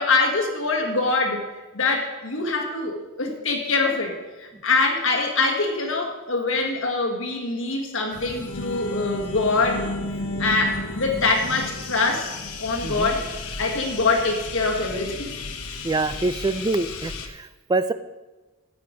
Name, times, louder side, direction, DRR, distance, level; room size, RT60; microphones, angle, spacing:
voice 1, 0.0-1.4 1.7-9.9 10.4-12.3 12.6-13.2 13.6-15.3, left 3 dB, 60° left, 2 dB, 1.6 m, -24 dB
sound 1, 8.1-17.3, left 3 dB, 85° left, 1.1 m, -33 dB
voice 2, 15.8-17.9, right 3 dB, 20° right, 12 dB, 0.3 m, -25 dB
9.5 x 8.6 x 5.0 m, 1.1 s
head